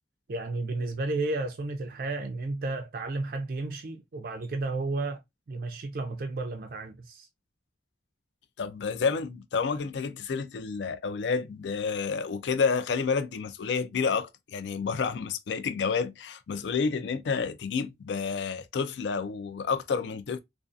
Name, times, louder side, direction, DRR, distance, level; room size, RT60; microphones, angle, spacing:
voice 1, 0.3-5.2 5.5-7.3, right 2 dB, 50° right, 0.3 m, -32 dB
voice 2, 8.6-20.4, left 5 dB, 75° left, 0.4 m, -29 dB
2.5 x 2.3 x 2.3 m
head